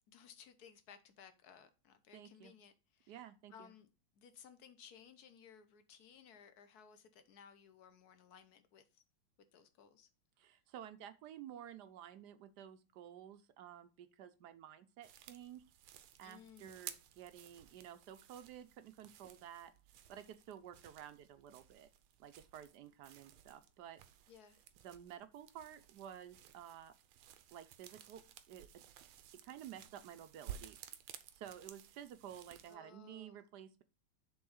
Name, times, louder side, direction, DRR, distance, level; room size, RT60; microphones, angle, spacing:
voice 1, 0.1-3.2 3.5-9.0 9.4-10.1 16.2-16.8 24.3-24.6 32.7-33.4, left 7 dB, 55° left, 1.2 m, -60 dB
voice 2, 2.1-2.5 3.1-3.7 10.4-19.7 20.1-21.9 22.2-24.0 24.8-26.9 27.5-28.2 28.5-28.8 29.3-30.8 31.3-33.8, right 10 dB, 70° right, 1.0 m, -52 dB
sound 1, 15.0-32.8, right 10 dB, 90° right, 1.6 m, -56 dB
7.2 x 3.6 x 6.3 m
omnidirectional pair, 2.3 m